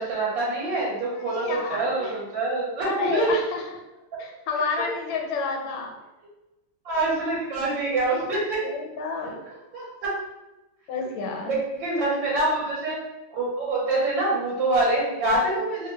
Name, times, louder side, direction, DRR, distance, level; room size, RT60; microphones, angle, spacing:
voice 1, 0.0-3.3 4.8-4.9 6.8-8.6 9.2-9.3 9.7-10.1 11.5-13.0 13.3-15.9, right 2 dB, 70° right, -6 dB, 1.5 m, -25 dB
voice 2, 1.3-2.1 2.8-3.8 4.2-6.0 8.6-9.4 10.9-11.5, left 4 dB, 80° left, 2 dB, 1.4 m, -30 dB
3.3 x 2.1 x 3.2 m, 1.0 s
omnidirectional pair, 2.2 m